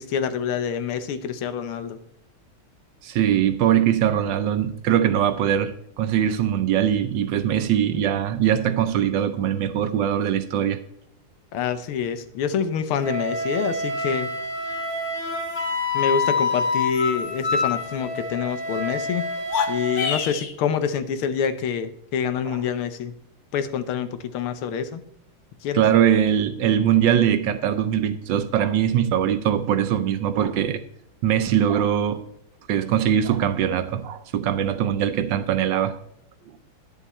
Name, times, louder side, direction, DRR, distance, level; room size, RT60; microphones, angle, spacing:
voice 1, 0.0-2.0 11.5-14.3 15.9-19.2 19.7-23.1 23.5-25.0 25.6-25.8, left 7 dB, 85° left, 1.8 m, -26 dB
voice 2, 3.0-10.8 22.5-22.6 25.7-30.8 31.2-32.2 32.7-36.0, right 9 dB, 70° right, 1.3 m, -21 dB
Wind instrument woodwind instrument, 13.0-20.1, left 3 dB, 35° left, 2.2 m, -27 dB
sound 1, 19.4-20.6, left 7 dB, 55° left, 1.3 m, -27 dB
10.0 x 7.2 x 4.2 m
omnidirectional pair, 2.3 m